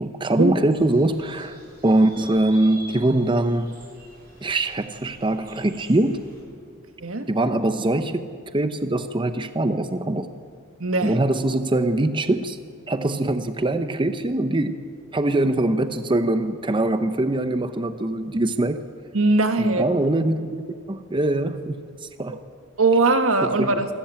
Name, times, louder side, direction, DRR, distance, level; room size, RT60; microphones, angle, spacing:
voice 1, 0.0-3.7 4.4-6.2 7.3-10.3 11.0-12.6 12.9-14.8 15.1-18.8 19.6-20.6 20.9-22.4 23.4-23.7, right 2 dB, 25° right, 9 dB, 0.7 m, -23 dB
sound 1, 0.7-6.4, right 1 dB, 50° right, 7.6 m, -46 dB
voice 2, 10.8-11.1 19.1-19.9 22.8-23.9, right 3 dB, 75° right, 8 dB, 1.6 m, -20 dB
26.5 x 13.5 x 8.7 m, 2.3 s
head